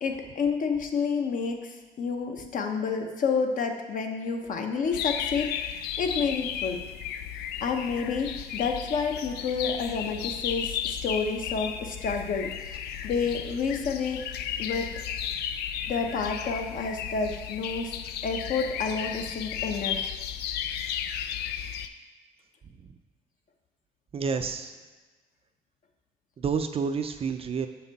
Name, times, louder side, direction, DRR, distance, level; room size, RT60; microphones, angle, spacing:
voice 1, 0.0-6.8 7.6-14.2 14.6-14.9 15.9-20.1, left 5 dB, 50° left, 4 dB, 0.9 m, -29 dB
sound 1, 4.9-21.9, left 9 dB, 75° left, 0.4 m, -34 dB
voice 2, 22.6-23.0 24.1-24.8 26.4-27.7, right 5 dB, 35° right, 7 dB, 0.5 m, -30 dB
6.4 x 5.9 x 4.0 m, 1.3 s
cardioid pair, 110°, 17 cm